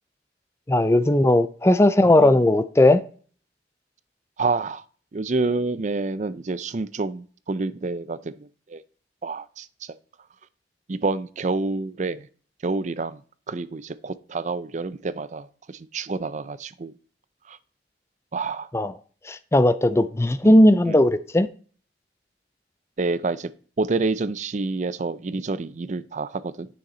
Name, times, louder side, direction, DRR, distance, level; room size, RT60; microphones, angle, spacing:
voice 1, 0.7-3.0 18.7-18.9 19.3-21.5, left 1 dB, 15° left, 0.4 m, -17 dB
voice 2, 4.4-4.8 5.1-8.8 9.2-9.7 10.9-12.3 12.6-13.2 13.5-16.9 17.5-17.6 18.3-18.7 20.4-20.5 20.9-21.0 23.0-23.5 23.8-26.7, right 3 dB, 40° right, 0.5 m, -28 dB
9.4 x 6.4 x 4.3 m
head